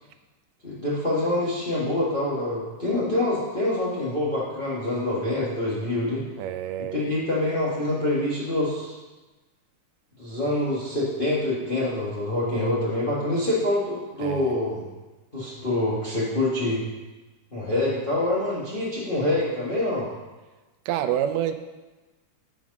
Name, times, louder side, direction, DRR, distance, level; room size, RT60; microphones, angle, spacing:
voice 1, 0.6-6.2 6.9-8.9 10.2-14.8 15.3-16.8 17.5-20.1, left 1 dB, 60° left, -8 dB, 0.5 m, -26 dB
voice 2, 6.4-7.0 14.2-14.5 20.9-21.5, right 10 dB, 85° right, 9 dB, 2.2 m, -27 dB
8.6 x 5.0 x 5.2 m, 1.2 s
omnidirectional pair, 3.8 m